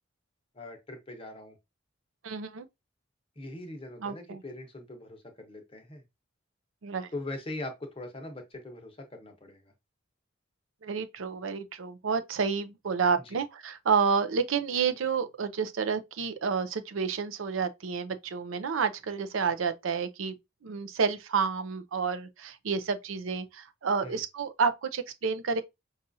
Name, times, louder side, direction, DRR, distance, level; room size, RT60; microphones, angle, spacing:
voice 1, 0.5-1.6 3.4-6.0 7.1-9.7 13.2-13.4 24.0-24.2, left 2 dB, 30° left, 1.0 m, -41 dB
voice 2, 2.2-2.7 4.0-4.4 6.8-7.1 10.8-20.3 20.6-25.6, right 5 dB, 70° right, 0.5 m, -30 dB
5.5 x 2.4 x 2.6 m
head